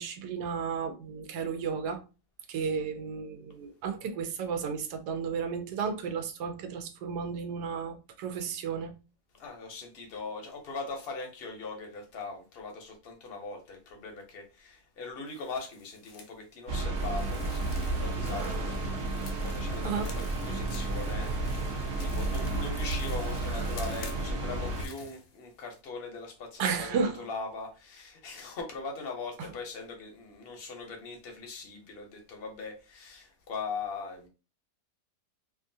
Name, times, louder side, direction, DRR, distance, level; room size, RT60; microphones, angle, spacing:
voice 1, 0.0-2.0 2.5-9.0 19.8-20.1 26.6-27.2 29.4-29.5, right 6 dB, 85° right, 1.2 m, -33 dB
voice 2, 9.3-19.0 19.4-21.7 22.0-34.3, left 4 dB, 50° left, 0.7 m, -41 dB
sound 1, 15.3-16.3 17.0-25.8, left 4 dB, 70° left, 1.1 m, -50 dB
sound 2, 16.7-24.9, right 2 dB, 65° right, 0.8 m, -32 dB
2.9 x 2.4 x 2.6 m
omnidirectional pair, 1.7 m